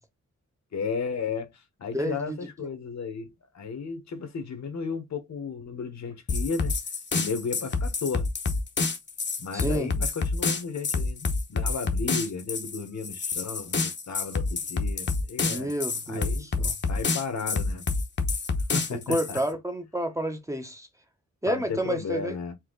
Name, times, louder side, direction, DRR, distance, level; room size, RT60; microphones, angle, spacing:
voice 1, 0.7-6.7 7.1-8.3 9.4-15.7 16.1-16.5 16.9-17.8 18.7-19.4 21.4-22.5, left 5 dB, 70° left, 1.3 m, -34 dB
voice 2, 1.9-2.5 9.5-9.9 15.5-16.7 18.9-20.9 21.4-22.4, right 1 dB, 10° right, 0.8 m, -30 dB
sound 1, 6.3-19.4, left 4 dB, 40° left, 0.8 m, -28 dB
4.5 x 2.9 x 3.7 m
wide cardioid pair, 175°, 29 cm